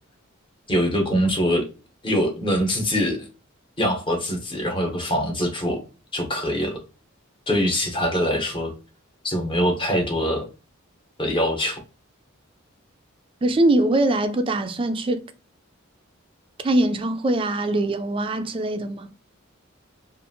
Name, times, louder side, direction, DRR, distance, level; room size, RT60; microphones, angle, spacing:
voice 1, 0.7-1.7 2.0-3.2 3.8-5.8 6.1-6.8 7.5-8.7 9.2-10.5 11.2-11.8, equal, 25° left, 0.8 m, -23 dB
voice 2, 13.4-15.2 16.6-19.1, right 1 dB, 25° right, 0.3 m, -22 dB
2.6 x 2.4 x 2.6 m
head